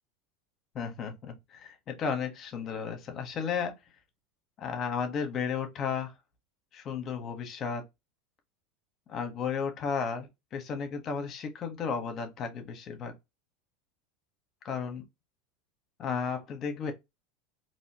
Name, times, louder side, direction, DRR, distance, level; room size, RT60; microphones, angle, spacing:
voice 1, 0.7-3.7 4.6-6.1 6.7-7.8 9.1-13.1 14.6-15.0 16.0-16.9, left 6 dB, 40° left, 1.5 m, -34 dB
4.1 x 3.1 x 3.0 m
hypercardioid pair, 95°, 0 cm